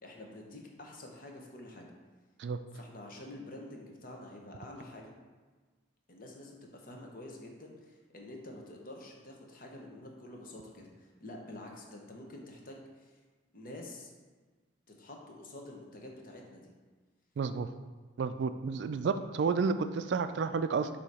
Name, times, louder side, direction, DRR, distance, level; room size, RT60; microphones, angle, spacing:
voice 1, 0.0-1.9 2.7-5.1 6.1-13.1 13.5-14.1 15.0-16.7, left 1 dB, 50° left, 0 dB, 0.9 m, -48 dB
voice 2, 17.4-17.7 18.2-20.9, right 5 dB, 65° right, 10 dB, 0.3 m, -31 dB
6.9 x 2.9 x 4.8 m, 1.4 s
head